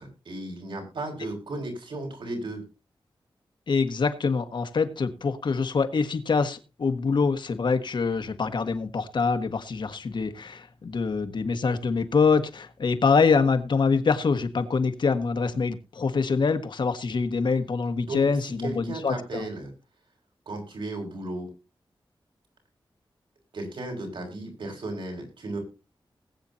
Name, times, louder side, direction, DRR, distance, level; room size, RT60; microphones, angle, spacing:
voice 1, 0.0-2.6 18.0-18.3 18.6-19.7 20.5-21.5 23.5-25.6, right 2 dB, 70° right, 5.7 m, -35 dB
voice 2, 3.7-19.4, left 4 dB, 60° left, 1.4 m, -25 dB
20.5 x 8.8 x 2.7 m
wide cardioid pair, 150°, 9 cm